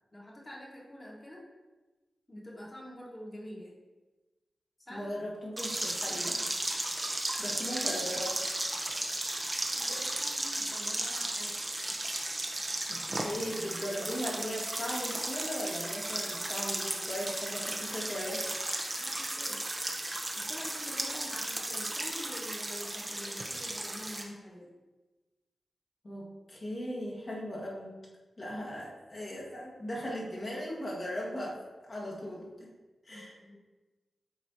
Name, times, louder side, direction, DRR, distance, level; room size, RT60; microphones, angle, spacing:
voice 1, 0.1-1.4 2.3-3.7 4.8-5.1 6.1-6.2 7.5-7.6 9.3-11.5 19.0-19.6 20.4-24.7 33.1-33.5, equal, 25° left, -4 dB, 1.8 m, -47 dB
voice 2, 4.9-6.4 7.4-8.5 9.9-10.1 12.9-18.5 26.0-28.0 28.4-32.7 33.1-33.4, equal, 45° left, -4 dB, 1.8 m, -38 dB
sound 1, 5.6-24.2, right 1 dB, 30° right, 0.9 m, -35 dB
7.5 x 4.2 x 2.9 m, 1.2 s
cardioid pair, 60°, 0 cm